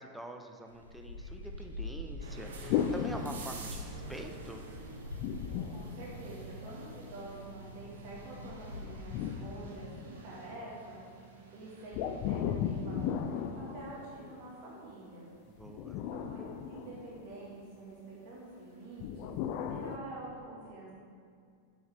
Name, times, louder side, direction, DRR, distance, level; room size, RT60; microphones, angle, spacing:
voice 1, 0.0-4.6 15.5-16.0, right 1 dB, 5° right, 4 dB, 0.6 m, -45 dB
sound 1, 0.7-9.2, left 1 dB, 85° left, 0.6 m, -46 dB
sound 2, 2.2-19.0, right 3 dB, 65° right, 1.0 m, -50 dB
sound 3, 2.7-4.1 5.1-6.7 8.4-10.4 11.9-14.5 15.6-17.5 19.0-20.0, left 8 dB, 45° left, 0.4 m, -36 dB
voice 2, 5.7-11.0 11.5-15.3 16.1-16.4 16.6-19.3 19.7-20.9, right 2 dB, 45° right, -6 dB, 2.0 m, -47 dB
7.2 x 7.1 x 3.6 m, 2.2 s
figure-of-eight pair, 90°, 0 cm